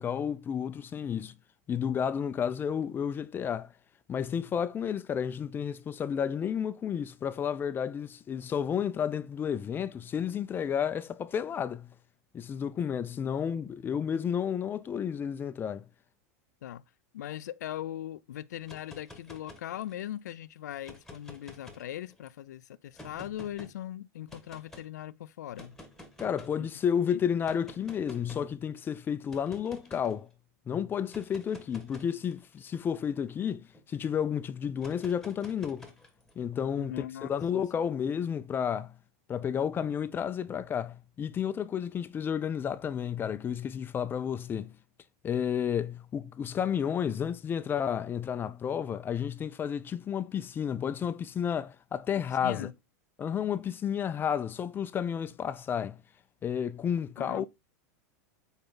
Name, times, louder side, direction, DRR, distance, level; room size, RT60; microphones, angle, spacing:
voice 1, 0.0-1.3 1.7-3.7 4.1-11.9 12.3-15.9 26.2-30.3 30.7-33.6 33.9-35.9 36.4-38.9 39.3-44.7 45.2-52.7 53.2-56.0 56.4-57.5, left 8 dB, 25° left, 0.5 m, -31 dB
voice 2, 17.1-25.8 26.6-26.7 27.1-27.2 36.8-37.6 52.4-52.7 57.2-57.5, left 12 dB, 85° left, 0.4 m, -40 dB
sound 1, 18.6-20.1 20.7-22.3 22.9-23.7 24.3-24.9 25.5-26.6 27.4-28.5 29.3-30.1 31.0-33.8 34.8-36.3, left 2 dB, 5° left, 1.6 m, -50 dB
6.9 x 4.5 x 3.8 m
hypercardioid pair, 120°, 9 cm